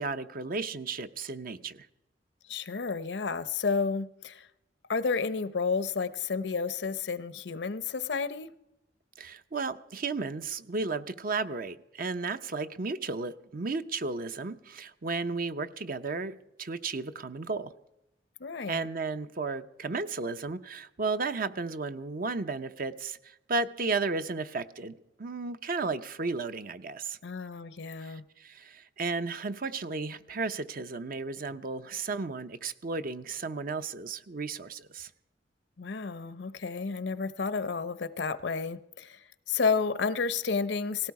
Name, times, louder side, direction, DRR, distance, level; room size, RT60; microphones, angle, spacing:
voice 1, 0.0-1.9 9.2-17.7 18.7-24.9 25.2-27.2 28.0-35.1, right 4 dB, 50° right, 0.7 m, -34 dB
voice 2, 2.5-4.5 4.9-8.5 18.4-18.9 27.2-28.2 35.8-41.1, left 5 dB, 70° left, 0.7 m, -31 dB
18.0 x 16.5 x 4.8 m
head